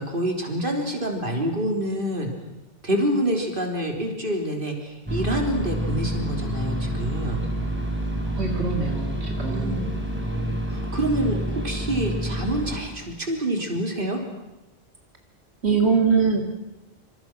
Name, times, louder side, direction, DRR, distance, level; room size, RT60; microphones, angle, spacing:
voice 1, 0.0-2.3 2.8-7.4 9.5-9.9 10.3-14.2, right 1 dB, 55° right, 3 dB, 3.7 m, -27 dB
sound 1, 5.1-12.8, right 1 dB, 10° right, 4.4 m, -28 dB
voice 2, 8.3-9.9 15.6-16.4, right 5 dB, 90° right, 3 dB, 2.8 m, -23 dB
26.5 x 26.5 x 6.1 m, 0.99 s
omnidirectional pair, 1.1 m